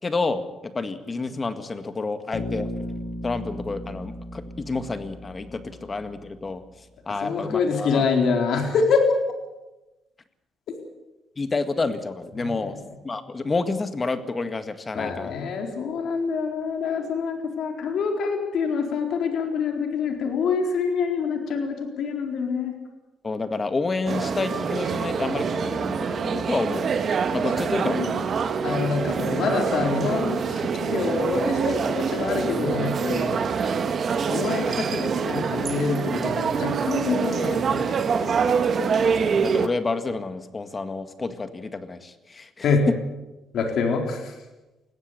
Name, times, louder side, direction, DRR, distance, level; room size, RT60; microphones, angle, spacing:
voice 1, 0.0-2.7 3.2-8.1 11.4-12.8 13.0-15.3 23.2-26.9 27.3-28.1 38.4-42.9, left 3 dB, 30° left, 10 dB, 1.9 m, -29 dB
Bass guitar, 2.3-6.4, equal, 50° left, 4.6 m, -35 dB
voice 2, 7.2-9.2 12.4-12.5 14.9-22.7 27.8-28.3 28.6-33.4 34.3-37.8 42.6-42.9 43.5-44.3, left 5 dB, 70° left, 3 dB, 4.2 m, -26 dB
sound 1, 24.1-39.7, right 6 dB, 50° right, 1.6 m, -25 dB
20.5 x 15.5 x 8.5 m, 1.1 s
cardioid pair, 90°, 0 cm